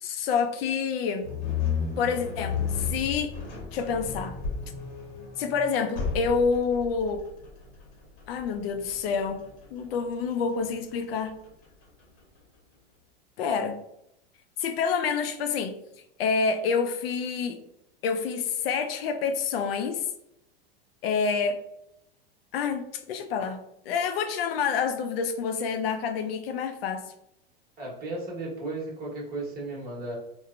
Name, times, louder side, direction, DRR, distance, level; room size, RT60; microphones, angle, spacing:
voice 1, 0.0-1.3 2.0-3.3 3.7-4.4 5.4-7.3 8.3-11.3 13.4-13.8 14.6-15.8 16.2-17.6 18.0-20.1 21.0-21.6 22.5-23.6 23.9-27.1, left 5 dB, 75° left, 7 dB, 0.5 m, -28 dB
sound 1, 1.2-12.4, left 6 dB, 50° left, 0.9 m, -34 dB
voice 2, 27.8-30.2, right 2 dB, 30° right, -3 dB, 1.1 m, -35 dB
2.9 x 2.1 x 2.4 m, 0.80 s
hypercardioid pair, 110°, 30 cm